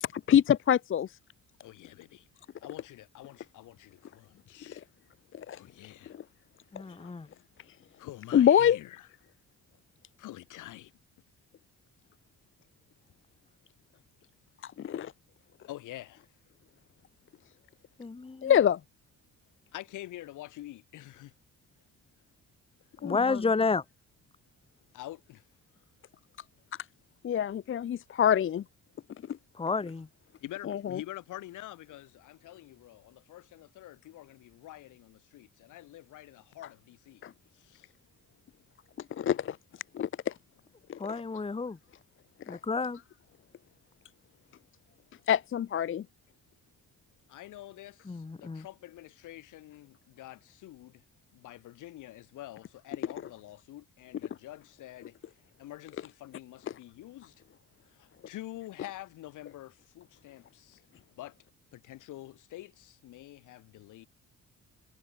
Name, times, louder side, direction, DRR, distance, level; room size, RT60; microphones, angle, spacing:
voice 1, 0.0-1.2 4.7-4.8 5.3-5.6 6.1-6.2 8.3-8.8 14.6-15.1 18.4-18.8 23.0-23.4 27.2-28.6 29.3-29.4 30.6-31.0 37.2-37.3 39.1-39.6 39.9-40.3 40.9-41.2 42.5-42.6 45.3-46.1 56.7-56.8, left 9 dB, 45° left, 0.6 m, -26 dB
voice 2, 1.6-2.3 2.6-4.8 5.5-6.1 8.0-9.1 10.2-10.9 15.7-16.3 19.7-21.3 24.9-25.4 30.4-37.3 37.5-37.9 47.3-51.0 51.3-55.2 55.6-57.4 57.9-60.8 61.2-61.3 61.7-64.1, left 15 dB, 85° left, 5.2 m, -47 dB
voice 3, 6.7-7.3 18.0-18.5 23.0-23.8 29.6-30.1 41.0-41.8 42.5-43.0 48.1-48.6, left 4 dB, 20° left, 1.2 m, -30 dB
cardioid pair, 90°, 30 cm